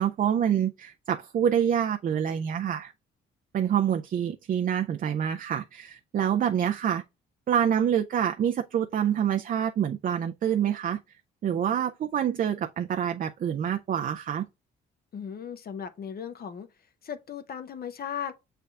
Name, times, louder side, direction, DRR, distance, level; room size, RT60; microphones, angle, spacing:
voice 1, 0.0-2.9 3.5-7.0 7.5-11.0 11.4-14.4, right 9 dB, 45° right, 0.4 m, -26 dB
voice 2, 15.1-16.7 17.0-18.3, left 8 dB, 50° left, 0.7 m, -36 dB
6.7 x 3.3 x 2.3 m
cardioid pair, 90°, 20 cm